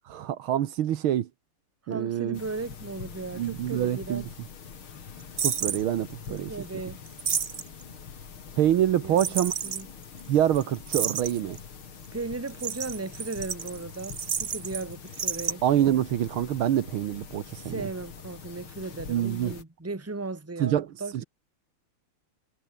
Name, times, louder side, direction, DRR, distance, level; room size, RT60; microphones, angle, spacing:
voice 1, 0.1-1.3 1.9-2.4 3.4-4.2 5.4-6.5 8.6-9.5 10.3-11.6 15.6-17.9 19.1-19.5 20.6-20.9, right 11 dB, 70° right, 1.8 m, -26 dB
voice 2, 1.9-4.3 6.3-7.0 9.0-9.4 9.6-9.9 12.1-15.6 17.6-21.2, right 3 dB, 5° right, 1.6 m, -36 dB
sound 1, 2.3-19.6, left 6 dB, 70° left, 3.2 m, -45 dB
sound 2, 5.4-5.8 7.1-7.8 9.2-9.8 10.2-10.3 10.5-10.6 10.9-11.6 12.5-14.8 15.1-15.5, right 7 dB, 50° right, 0.6 m, -30 dB
omnidirectional pair, 2.4 m